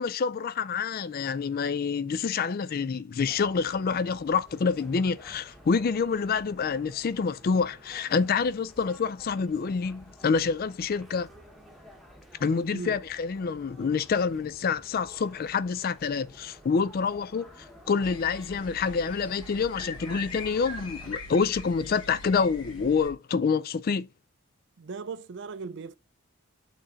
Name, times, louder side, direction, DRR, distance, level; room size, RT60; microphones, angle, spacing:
voice 1, 0.0-11.3 12.4-24.1, left 5 dB, 40° left, 0.3 m, -27 dB
sound 1, 3.2-21.1, equal, ahead, 1.1 m, -52 dB
voice 2, 12.7-13.0 24.8-26.0, right 5 dB, 55° right, 0.4 m, -38 dB
sound 2, 18.0-23.1, left 2 dB, 60° left, 3.1 m, -42 dB
6.3 x 3.9 x 4.0 m
head